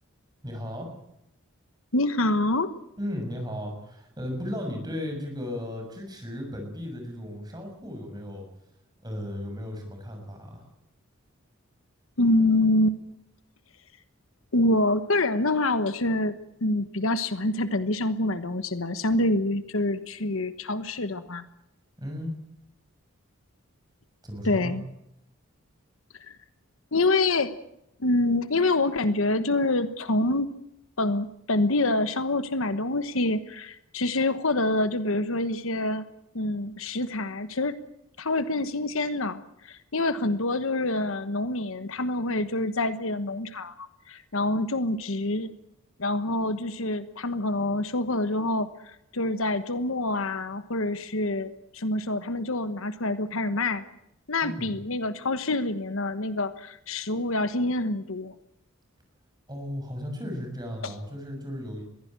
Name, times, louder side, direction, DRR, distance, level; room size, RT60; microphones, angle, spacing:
voice 1, 0.4-0.9 3.0-8.5 9.0-10.6 22.0-22.3 24.2-24.8 54.4-54.8 59.5-61.8, left 1 dB, 20° right, 3 dB, 6.5 m, -35 dB
voice 2, 1.9-2.7 12.2-13.0 14.5-16.3 16.6-21.4 24.4-24.8 26.2-26.4 26.9-27.5 28.0-30.5 31.0-36.0 36.3-37.8 38.2-45.5 46.0-53.8 54.3-58.3 60.8-60.9, left 2 dB, 65° left, 12 dB, 1.2 m, -26 dB
22.0 x 15.5 x 8.9 m, 0.80 s
head